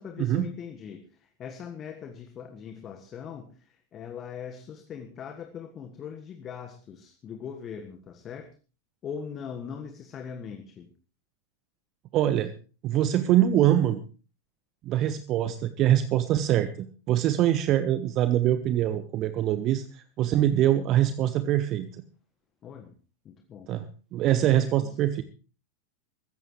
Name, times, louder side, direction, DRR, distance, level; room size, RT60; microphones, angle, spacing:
voice 1, 0.0-8.5 9.0-10.9 22.6-22.9 23.2-23.7 24.4-25.0, left 7 dB, 30° left, 7 dB, 1.5 m, -41 dB
voice 2, 12.1-12.5 12.8-14.0 14.8-22.0 23.7-23.9 24.1-25.2, right 12 dB, 35° right, 12 dB, 0.9 m, -24 dB
23.0 x 14.5 x 3.2 m, 0.37 s
figure-of-eight pair, 90°, 0 cm